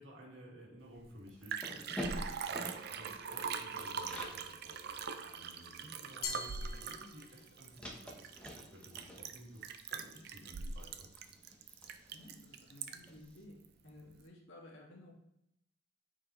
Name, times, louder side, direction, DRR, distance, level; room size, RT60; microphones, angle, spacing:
voice 1, 0.0-4.9 5.2-11.1 13.8-14.1, equal, 80° right, -3 dB, 1.9 m, -55 dB
Liquid, 1.0-1.1 1.3-13.2 13.6-13.7, right 6 dB, 55° right, 0.5 m, -42 dB
sound 1, 1.4-4.4 4.8-4.9 5.2-13.2, equal, 5° left, 0.9 m, -49 dB
Glass, 6.2-7.7, left 3 dB, 55° left, 0.8 m, -43 dB
voice 2, 12.1-15.1, left 1 dB, 80° left, -2 dB, 1.8 m, -55 dB
7.1 x 4.7 x 3.0 m, 0.81 s
head